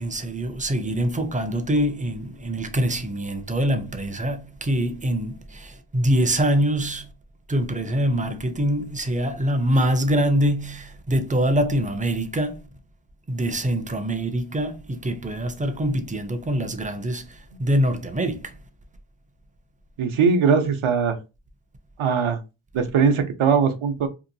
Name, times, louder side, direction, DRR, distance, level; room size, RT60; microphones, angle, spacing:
voice 1, 0.0-7.1 7.5-12.6 13.3-18.5, right 1 dB, 15° right, 0.4 m, -24 dB
voice 2, 20.0-21.2 22.0-22.4 22.7-24.1, right 6 dB, 75° right, 0.6 m, -20 dB
2.8 x 2.5 x 2.6 m
wide cardioid pair, 105°, 49 cm